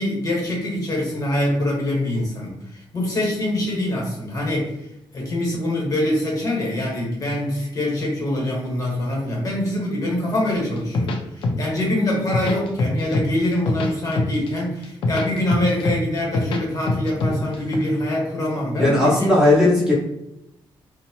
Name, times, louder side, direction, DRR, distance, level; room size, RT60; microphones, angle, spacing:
voice 1, 0.0-4.9 5.1-19.3, left 1 dB, 40° left, -2 dB, 1.0 m, -24 dB
sound 1, 10.8-11.8 12.1-13.3 13.5-14.5 14.8-16.6 16.9-17.8, left 2 dB, 75° left, 0.5 m, -23 dB
voice 2, 18.8-19.9, left 2 dB, 5° right, -6 dB, 0.6 m, -17 dB
2.7 x 2.0 x 2.9 m, 0.83 s
cardioid pair, 135°, 9 cm